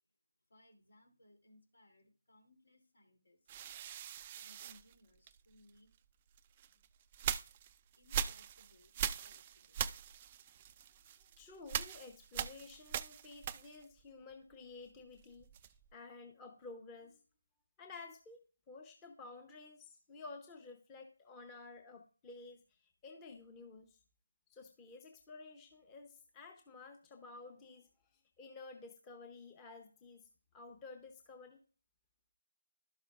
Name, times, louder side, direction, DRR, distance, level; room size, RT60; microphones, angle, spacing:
voice 1, 0.5-3.6 4.3-6.0 8.0-8.9 9.2-9.8, left 1 dB, 70° left, 4 dB, 3.0 m, -66 dB
sound 1, 3.5-5.7 6.4-14.0 14.3-15.9, right 9 dB, 25° right, 0.3 m, -42 dB
voice 2, 11.2-15.5 15.9-17.2 17.8-24.0 24.5-27.9 28.4-30.3 30.5-31.6, left 3 dB, 15° left, 4 dB, 0.8 m, -53 dB
12.0 x 6.4 x 2.5 m, 0.35 s
figure-of-eight pair, 160°, 0 cm